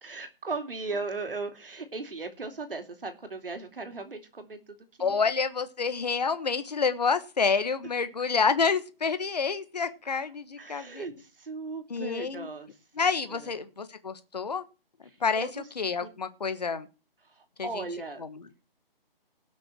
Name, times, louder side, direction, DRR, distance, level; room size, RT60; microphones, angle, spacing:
voice 1, 0.0-5.2 10.0-10.2 10.6-12.7 13.3-13.5 15.1-15.6 16.0-16.1 17.3-18.2, right 3 dB, 65° right, 7 dB, 2.8 m, -37 dB
voice 2, 5.0-11.1 11.9-12.5 12.9-14.6 15.2-15.5 15.8-16.9 17.6-17.9 18.2-18.6, left 5 dB, 45° left, 11 dB, 1.4 m, -28 dB
18.0 x 6.2 x 4.5 m, 0.33 s
hypercardioid pair, 175°, 30 cm